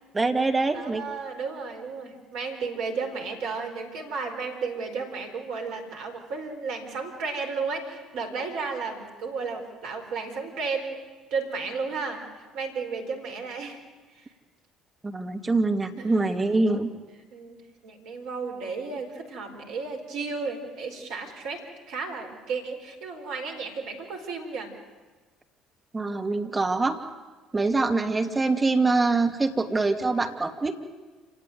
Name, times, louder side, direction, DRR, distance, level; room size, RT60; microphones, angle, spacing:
voice 1, 0.1-1.0 15.0-16.9 25.9-27.0 27.5-30.8, right 3 dB, 20° right, 5 dB, 2.7 m, -24 dB
voice 2, 0.7-11.0 11.3-13.8 14.1-14.3 16.0-16.4 17.3-17.6 17.8-24.7, right 4 dB, 60° right, 4 dB, 4.8 m, -33 dB
28.5 x 18.0 x 9.5 m, 1.3 s
figure-of-eight pair, 55°, 0 cm